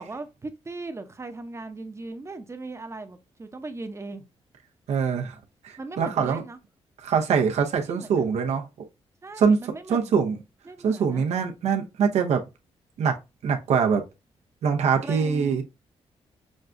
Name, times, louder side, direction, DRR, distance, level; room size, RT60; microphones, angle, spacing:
voice 1, 0.0-4.2 5.8-6.6 7.9-8.2 9.2-10.1 10.7-11.3 15.0-15.6, right 3 dB, 25° right, 0.7 m, -38 dB
voice 2, 4.9-5.4 5.6-6.4 7.0-8.7 9.4-9.6 9.9-10.4 10.8-12.4 13.0-13.2 13.4-14.0 14.6-15.6, right 6 dB, 85° right, 0.7 m, -23 dB
6.2 x 2.3 x 2.5 m
cardioid pair, 85°, 11 cm